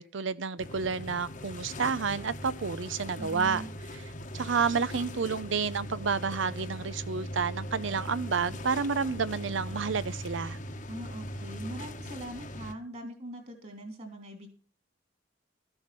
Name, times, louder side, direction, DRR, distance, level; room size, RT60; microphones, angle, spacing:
voice 1, 0.0-3.6 3.9-10.6, right 5 dB, 80° right, 0.7 m, -30 dB
sound 1, 0.6-12.7, equal, 45° left, 1.1 m, -40 dB
voice 2, 3.2-3.7 10.9-14.5, right 1 dB, 35° right, 3.4 m, -41 dB
13.5 x 7.9 x 6.0 m
head